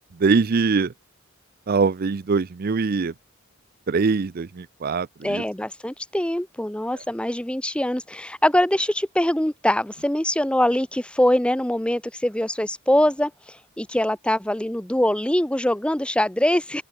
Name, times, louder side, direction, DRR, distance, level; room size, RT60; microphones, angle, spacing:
voice 1, 0.2-0.9 1.7-3.1 3.9-5.4 7.0-7.1, right 4 dB, 45° right, 0.5 m, -22 dB
voice 2, 5.2-16.8, left 1 dB, 5° left, 0.8 m, -23 dB
open air
head